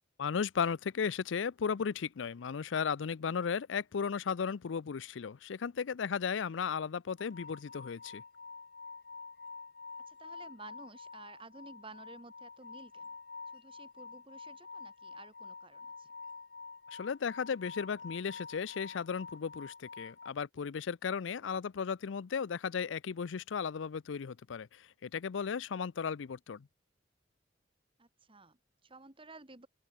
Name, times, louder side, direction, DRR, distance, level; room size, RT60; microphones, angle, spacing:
voice 1, 0.2-8.2 16.9-26.7, left 6 dB, 90° left, 0.5 m, -35 dB
sound 1, 7.2-20.3, left 4 dB, 55° left, 3.7 m, -48 dB
voice 2, 10.1-13.1 13.5-16.1 21.4-21.6 28.0-29.7, right 3 dB, 30° right, 2.7 m, -53 dB
open air
head